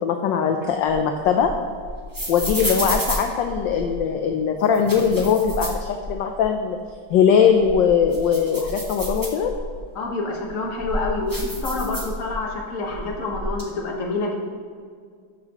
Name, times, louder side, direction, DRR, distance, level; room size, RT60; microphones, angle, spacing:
voice 1, 0.0-1.5 2.3-6.8 7.1-9.5, left 7 dB, 75° left, 4 dB, 1.2 m, -20 dB
sound 1, 0.6-4.0 4.6-6.5 6.8-6.9 7.4-9.8 10.4-12.5 12.8-13.6, equal, 15° right, 1.0 m, -31 dB
voice 2, 9.9-14.4, left 2 dB, 45° left, 0 dB, 1.4 m, -27 dB
12.5 x 5.7 x 3.0 m, 2.1 s
omnidirectional pair, 2.2 m